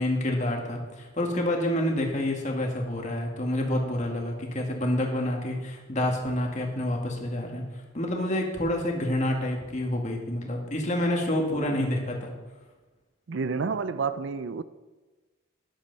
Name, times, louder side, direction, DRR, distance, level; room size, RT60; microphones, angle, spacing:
voice 1, 0.0-7.6 7.9-12.3, left 1 dB, 35° left, 2.0 m, -28 dB
voice 2, 13.3-14.6, right 5 dB, 65° right, 0.5 m, -30 dB
13.5 x 10.5 x 4.1 m
head